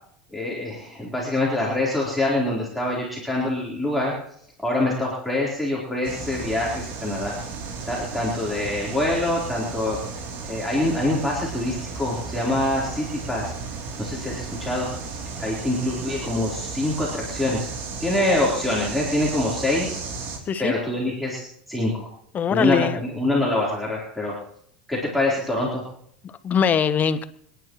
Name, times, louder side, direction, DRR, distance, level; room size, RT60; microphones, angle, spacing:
voice 1, 0.3-4.1 4.6-7.3 7.9-10.0 10.5-13.5 14.0-17.7 18.0-20.0 20.6-21.4 21.7-22.1 22.5-24.3 24.9-25.8, left 1 dB, ahead, -6 dB, 4.1 m, -25 dB
sound 1, 6.0-20.4, right 4 dB, 55° right, 3.2 m, -34 dB
voice 2, 22.3-23.0 26.2-27.2, left 7 dB, 35° left, 13 dB, 1.0 m, -22 dB
27.0 x 10.5 x 3.2 m, 0.67 s
hypercardioid pair, 95°, 5 cm